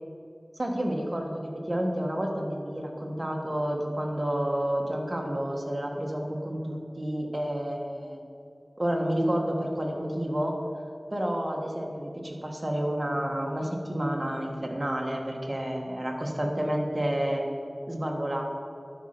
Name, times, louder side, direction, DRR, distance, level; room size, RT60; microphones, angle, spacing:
voice 1, 0.6-8.2 8.8-10.5 11.1-18.4, right 1 dB, 35° right, 0 dB, 1.6 m, -30 dB
12.0 x 4.5 x 5.7 m, 2.6 s
wide cardioid pair, 40°, 0 cm